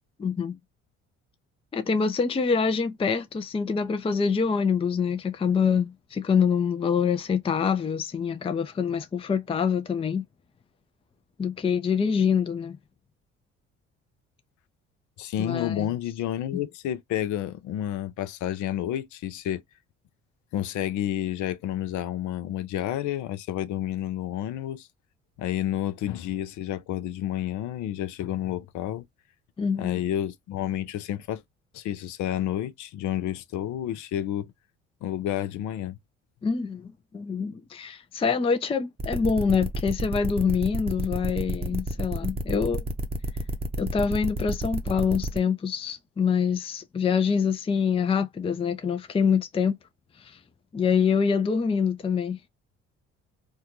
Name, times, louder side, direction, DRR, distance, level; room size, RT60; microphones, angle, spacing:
voice 1, 0.2-0.5 1.7-10.2 11.4-12.8 15.4-15.9 29.6-30.0 36.4-42.8 43.8-49.8 50.2-50.4 50.7-52.4, left 6 dB, 15° left, 0.5 m, -25 dB
voice 2, 15.2-19.6 20.5-24.9 25.4-29.1 29.7-31.4 31.7-34.5 35.0-36.0, left 12 dB, 65° left, 0.6 m, -30 dB
sound 1, 39.0-45.4, right 1 dB, 20° right, 0.7 m, -30 dB
3.5 x 2.2 x 2.9 m
hypercardioid pair, 55°, 32 cm